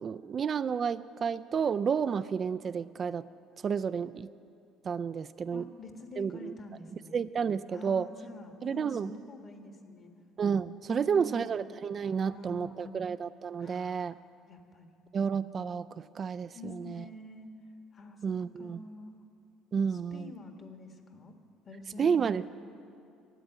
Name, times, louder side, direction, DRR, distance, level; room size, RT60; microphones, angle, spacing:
voice 1, 0.0-3.3 3.6-4.3 4.8-5.6 6.2-6.5 6.9-8.1 8.6-9.1 10.4-14.2 15.1-17.0 18.2-18.8 19.7-20.3 22.0-22.5, right 6 dB, 40° right, 13 dB, 0.3 m, -31 dB
voice 2, 5.5-7.1 7.7-10.1 10.9-11.5 12.2-13.0 13.6-14.1 14.5-14.9 16.5-17.5 17.9-19.2 19.9-21.4 21.6-22.5, left 2 dB, 40° left, 5 dB, 1.5 m, -47 dB
13.0 x 8.5 x 9.1 m, 2.6 s
supercardioid pair, 90°, 0 cm